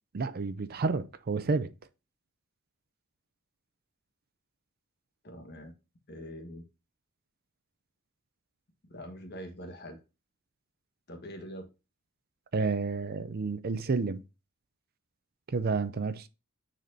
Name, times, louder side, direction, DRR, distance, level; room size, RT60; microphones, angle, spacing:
voice 1, 0.1-1.7 12.5-14.2 15.5-16.3, right 4 dB, 45° right, 0.5 m, -30 dB
voice 2, 5.2-5.7 6.1-6.6 8.9-10.0 11.1-11.7, equal, 50° left, 1.4 m, -43 dB
9.3 x 4.2 x 2.6 m
head